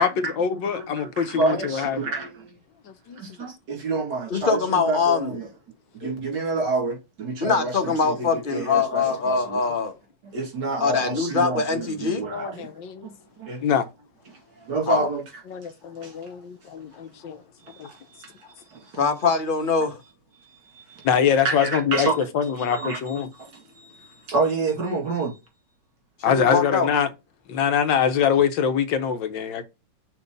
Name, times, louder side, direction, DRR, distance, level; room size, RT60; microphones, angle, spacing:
voice 1, 0.0-2.0 2.8-3.2 6.0-6.1 12.2-13.1 13.6-13.9 15.5-17.4 17.8-17.9 21.0-22.1 22.3-23.3 26.2-27.1 27.5-29.6, left 7 dB, 85° left, 1.6 m, -24 dB
voice 2, 0.7-2.5 3.2-5.5 5.9-9.6 10.2-12.7 13.0-13.6 14.6-15.2 16.0-16.1 17.6-18.3 18.7-19.0 20.4-21.1 21.4-22.2 22.7-25.4, right 3 dB, 65° right, 2.8 m, -29 dB
voice 3, 4.3-5.3 7.4-9.9 10.8-12.2 14.9-15.1 17.8-17.9 19.0-20.0 26.3-26.9, left 5 dB, 35° left, 1.0 m, -23 dB
6.0 x 3.1 x 5.2 m
omnidirectional pair, 2.0 m